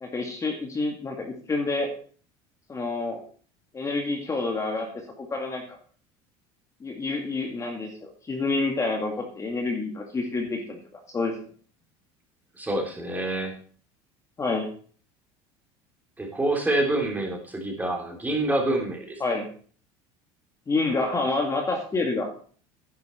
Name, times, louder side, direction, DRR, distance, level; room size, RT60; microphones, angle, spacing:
voice 1, 0.0-1.9 2.7-3.2 3.7-4.9 5.2-5.8 6.8-10.8 11.1-11.3 14.4-14.7 19.2-19.5 20.7-22.3, left 3 dB, 25° left, 2 dB, 2.1 m, -28 dB
voice 2, 12.6-13.6 16.2-19.2, right 1 dB, 10° right, 1 dB, 3.2 m, -27 dB
10.5 x 9.1 x 4.4 m, 0.44 s
supercardioid pair, 110°, 14 cm